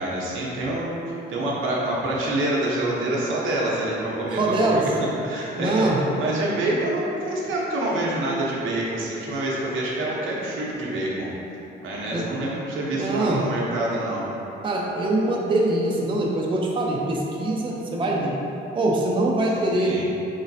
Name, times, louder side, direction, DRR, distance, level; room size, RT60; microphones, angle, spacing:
voice 1, 0.0-4.8 5.2-11.3 11.8-14.2 19.7-20.1, right 1 dB, 80° right, -5 dB, 0.8 m, -26 dB
voice 2, 4.4-4.8 5.6-6.0 12.1-12.3 12.9-13.4 14.6-18.4 18.7-19.9, right 2 dB, 25° right, -3 dB, 0.5 m, -23 dB
3.7 x 3.1 x 2.6 m, 3.0 s
cardioid pair, 90°, 20 cm